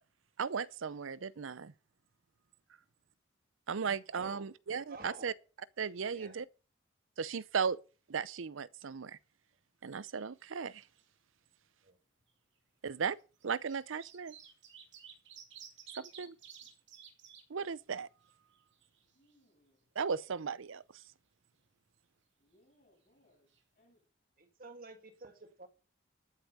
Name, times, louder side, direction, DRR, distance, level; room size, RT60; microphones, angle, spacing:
voice 1, 0.4-1.7 3.7-5.3 5.8-6.5 7.2-7.8 8.1-9.2 9.8-10.8 12.8-13.2 13.4-14.3 16.0-16.4 17.5-18.1 20.0-21.0, right 6 dB, 85° right, 0.6 m, -36 dB
voice 2, 4.1-4.5 4.9-5.3 6.1-6.4 11.8-12.0 24.4-25.7, right 2 dB, 45° right, 1.9 m, -51 dB
sound 1, 10.0-10.7 11.0-11.1 12.2-12.3 13.2-17.4 17.9-18.0 18.3-19.3 23.2-23.3 23.5-23.6, right 8 dB, 65° right, 2.6 m, -54 dB
voice 3, 19.1-19.9 22.4-24.0, left 1 dB, 45° left, 7.9 m, -70 dB
12.5 x 8.2 x 5.3 m
head